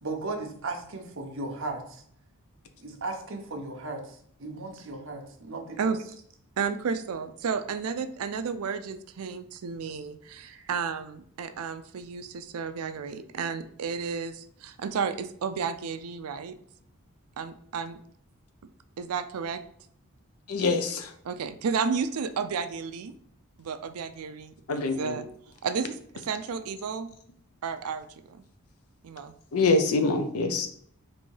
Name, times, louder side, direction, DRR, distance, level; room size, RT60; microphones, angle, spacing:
voice 1, 0.0-2.0 2.8-5.9 10.4-10.7, right 2 dB, 60° right, 3 dB, 0.8 m, -36 dB
voice 2, 6.6-16.6 17.4-18.0 19.0-19.6 21.3-23.1 23.6-25.2 25.6-26.0 26.2-27.1 27.6-28.4 29.0-29.3, right 6 dB, 80° right, 11 dB, 0.4 m, -32 dB
voice 3, 20.5-21.1 24.7-25.2 29.5-30.7, left 3 dB, 80° left, 7 dB, 0.6 m, -25 dB
4.2 x 2.7 x 4.5 m, 0.64 s
head